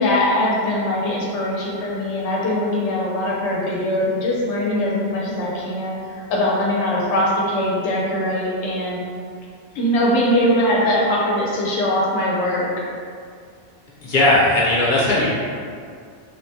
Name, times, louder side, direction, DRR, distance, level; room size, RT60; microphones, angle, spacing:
voice 1, 0.0-5.9 6.3-9.0 9.7-12.7, left 1 dB, 80° left, -4 dB, 1.0 m, -21 dB
voice 2, 14.0-15.3, left 1 dB, 50° left, -7 dB, 0.8 m, -17 dB
3.6 x 2.1 x 2.7 m, 2.2 s
omnidirectional pair, 1.2 m